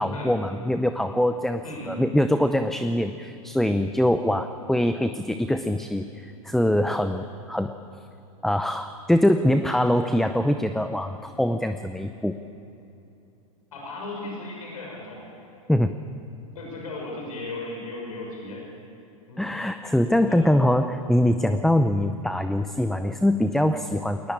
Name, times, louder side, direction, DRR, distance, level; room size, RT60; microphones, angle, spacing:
voice 1, 0.0-7.7 8.4-12.4 15.7-15.9 19.4-24.3, left 1 dB, ahead, 9 dB, 0.6 m, -23 dB
voice 2, 1.6-2.0 13.7-15.2 16.5-18.6 19.3-19.5 20.3-20.5, left 2 dB, 75° left, -2 dB, 6.8 m, -36 dB
21.5 x 19.0 x 8.8 m, 2.8 s
hypercardioid pair, 110°, 18 cm